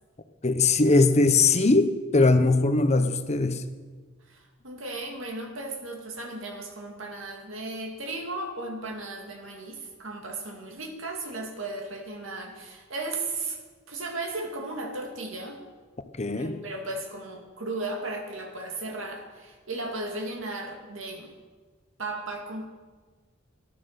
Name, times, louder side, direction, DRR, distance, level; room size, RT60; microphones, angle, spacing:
voice 1, 0.4-3.6 16.2-16.6, left 3 dB, 35° left, 10 dB, 0.8 m, -21 dB
voice 2, 4.3-13.6 13.9-15.6 16.3-21.3 22.0-22.7, right 2 dB, 70° right, 2 dB, 2.3 m, -35 dB
14.0 x 11.0 x 6.6 m, 1.4 s
head